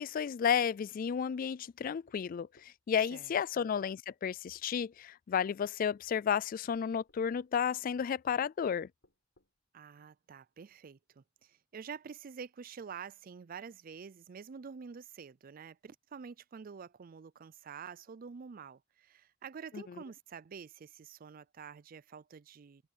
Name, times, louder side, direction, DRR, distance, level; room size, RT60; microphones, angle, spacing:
voice 1, 0.0-8.9 19.7-19.8, left 7 dB, 45° left, 0.3 m, -32 dB
sound 1, 2.1-2.8 3.8-3.9 4.5-4.7 5.3-5.5 6.7-7.5 8.7-9.6, left 1 dB, 70° left, 5.7 m, -66 dB
voice 2, 3.1-3.6 9.7-22.9, right 6 dB, 45° right, 0.4 m, -48 dB
head